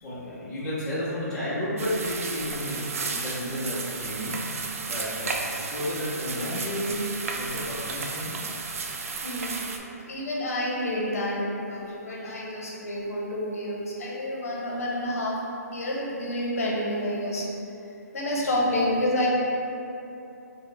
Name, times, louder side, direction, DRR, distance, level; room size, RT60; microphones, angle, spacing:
voice 1, 0.0-4.4 4.8-5.4 5.7-8.4 18.4-18.6, equal, 5° left, -12 dB, 0.4 m, -32 dB
sound 1, 1.8-9.8, right 4 dB, 55° right, 0.3 m, -33 dB
voice 2, 9.2-9.8 10.1-15.4 15.7-17.5 18.1-19.3, left 1 dB, 60° left, -4 dB, 0.8 m, -29 dB
4.2 x 2.1 x 3.2 m, 2.9 s
hypercardioid pair, 165°, 9 cm